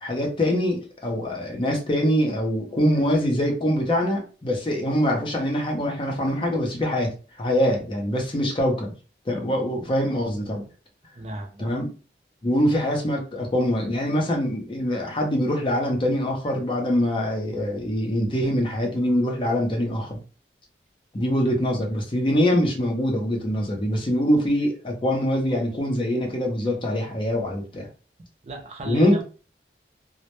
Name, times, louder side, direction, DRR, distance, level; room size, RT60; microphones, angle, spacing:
voice 1, 0.0-7.1 7.4-8.9 9.3-10.7 11.6-11.9 12.4-20.2 21.1-27.9 28.9-29.1, equal, 30° left, 1 dB, 0.5 m, -24 dB
voice 2, 11.2-11.8 28.4-29.2, right 2 dB, 35° right, 3 dB, 0.4 m, -33 dB
2.1 x 2.0 x 2.8 m, 0.36 s
head